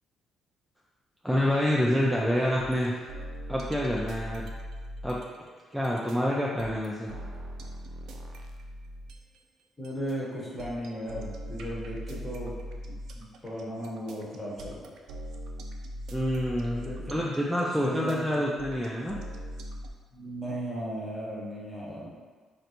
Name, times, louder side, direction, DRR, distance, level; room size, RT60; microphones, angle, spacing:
voice 1, 1.2-3.1 3.5-4.5 5.0-5.2 5.7-7.1 16.1-19.2, equal, ahead, -5 dB, 0.4 m, -27 dB
sound 1, 2.6-9.4 9.8-19.9, equal, 80° right, 0.3 m, -40 dB
voice 2, 9.8-12.6 13.1-14.9 16.8-17.2 17.6-18.4 20.1-22.1, equal, 20° left, -6 dB, 1.0 m, -36 dB
3.1 x 2.5 x 2.8 m, 1.4 s
cardioid pair, 90°, 0 cm